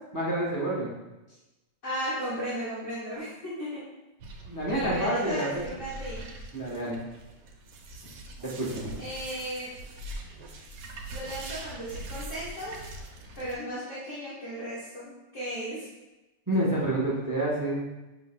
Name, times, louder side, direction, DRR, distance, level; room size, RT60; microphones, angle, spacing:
voice 1, 0.1-0.9 4.5-5.6 6.5-7.0 8.4-8.9 16.5-17.8, right 1 dB, 20° right, -6 dB, 0.6 m, -28 dB
voice 2, 1.8-3.9 4.7-6.2 9.0-9.7 11.1-12.8 13.4-15.9, equal, 45° left, -11 dB, 1.6 m, -35 dB
sound 1, 4.2-13.5, right 2 dB, 85° right, 1.3 m, -42 dB
6.2 x 3.4 x 2.2 m, 1.0 s
omnidirectional pair, 1.9 m